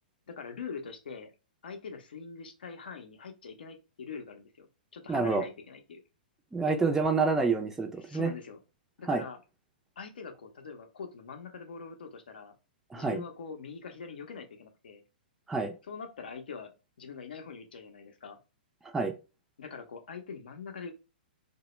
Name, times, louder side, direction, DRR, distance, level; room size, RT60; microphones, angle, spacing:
voice 1, 0.3-1.3 1.6-6.0 6.6-6.9 8.0-8.6 9.0-9.4 10.0-12.6 12.9-15.0 15.9-16.7 17.0-18.4 19.6-20.9, left 5 dB, 75° left, 0.6 m, -43 dB
voice 2, 5.1-5.4 6.5-8.3 9.1-9.2 12.9-13.2 15.5-15.7 18.9-19.1, right 4 dB, 10° right, 0.4 m, -27 dB
2.1 x 2.0 x 3.0 m
hypercardioid pair, 120°, 5 cm